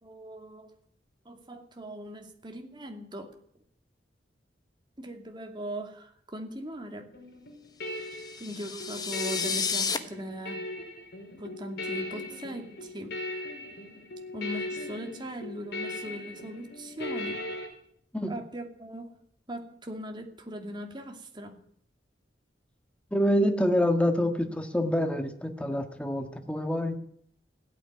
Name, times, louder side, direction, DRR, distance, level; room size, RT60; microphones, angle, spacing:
voice 1, 0.0-0.7 1.2-3.3 5.0-7.1 8.4-10.7 11.4-13.2 14.3-17.4 18.3-19.1 19.5-21.6, equal, 25° right, 3 dB, 2.5 m, -40 dB
sound 1, 7.1-17.7, left 2 dB, 65° left, 5.6 m, -38 dB
sound 2, 8.1-10.0, left 5 dB, 25° left, 1.1 m, -31 dB
voice 2, 23.1-27.0, equal, 5° left, 6 dB, 1.6 m, -26 dB
16.5 x 9.3 x 9.5 m, 0.66 s
head